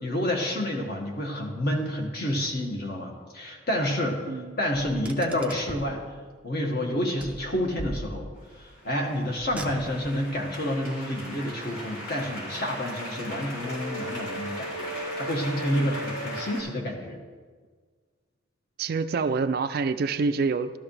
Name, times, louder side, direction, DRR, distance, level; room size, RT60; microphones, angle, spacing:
voice 1, 0.0-6.0 6.4-8.3 8.6-17.2, left 1 dB, 50° left, 1 dB, 1.7 m, -29 dB
voice 2, 4.3-4.6 15.7-16.0 18.8-20.7, right 4 dB, 45° right, 11 dB, 0.4 m, -27 dB
Car, 5.0-6.0 7.2-8.5 9.4-10.2, right 1 dB, 5° right, 0.6 m, -39 dB
sound 1, 8.5-16.6, equal, 75° left, 3.8 m, -37 dB
13.0 x 13.0 x 3.3 m, 1.5 s
head